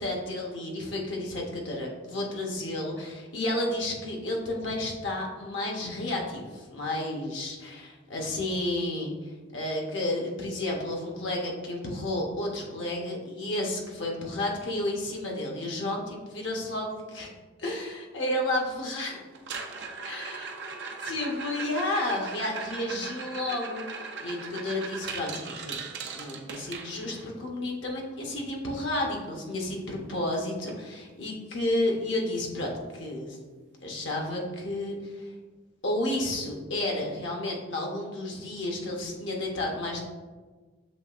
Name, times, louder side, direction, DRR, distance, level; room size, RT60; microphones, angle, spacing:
voice 1, 0.0-17.3 17.6-19.2 20.0-20.4 21.0-23.9 24.2-25.9 26.2-33.4 33.8-35.3 35.8-40.0, left 1 dB, 90° left, 0 dB, 0.9 m, -31 dB
sound 1, 19.3-27.3 29.6-29.7 29.9-30.3 30.7-30.8 31.3-31.4 33.3-33.4, right 4 dB, 65° right, 0.5 m, -39 dB
7.3 x 3.0 x 2.4 m, 1.3 s
head